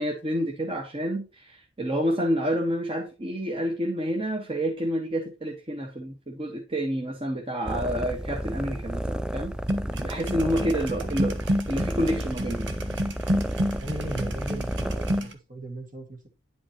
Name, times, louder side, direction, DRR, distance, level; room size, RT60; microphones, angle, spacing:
voice 1, 0.0-9.5 9.9-11.3 11.7-12.7, equal, 30° right, 1.4 m, -29 dB
sound 1, 7.7-15.2, right 1 dB, 5° right, 0.3 m, -31 dB
sound 2, 9.7-15.3, equal, 75° right, 1.2 m, -29 dB
voice 2, 13.8-16.3, right 1 dB, 45° right, 1.9 m, -38 dB
10.0 x 5.2 x 2.9 m
head